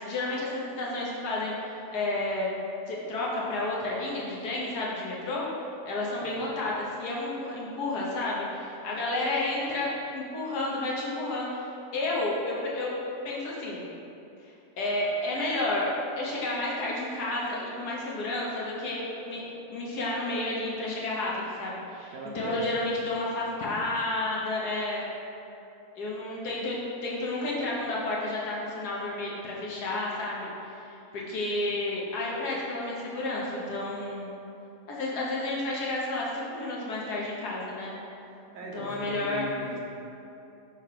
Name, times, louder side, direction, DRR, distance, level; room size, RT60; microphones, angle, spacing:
voice 1, 0.1-2.5 2.9-5.5 5.8-12.9 13.2-13.9 14.8-15.9 16.2-19.4 19.7-25.1 25.9-34.3 34.9-37.9 38.7-39.5, left 2 dB, 60° left, -5 dB, 1.4 m, -31 dB
voice 2, 22.1-23.0 38.2-39.8, right 3 dB, 75° right, -3 dB, 1.5 m, -39 dB
5.6 x 3.3 x 5.7 m, 2.8 s
omnidirectional pair, 2.0 m